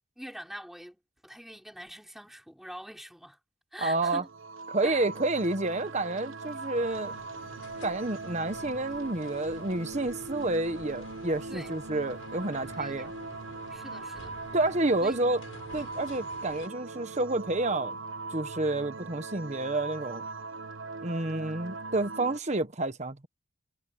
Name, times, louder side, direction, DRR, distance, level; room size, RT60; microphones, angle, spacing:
voice 1, 0.2-3.4 3.7-4.3 4.8-5.1 11.5-11.7 12.7-13.1 13.7-14.4 15.0-15.2, equal, ahead, 5.6 m, -44 dB
voice 2, 3.8-4.2 4.7-7.2 7.8-13.1 14.5-15.4 15.7-18.0 18.3-20.2 21.0-23.3, right 2 dB, 35° right, 1.2 m, -29 dB
sound 1, 4.2-22.4, right 3 dB, 80° right, 1.0 m, -40 dB
sound 2, 6.7-16.7, left 2 dB, 80° left, 7.5 m, -50 dB
head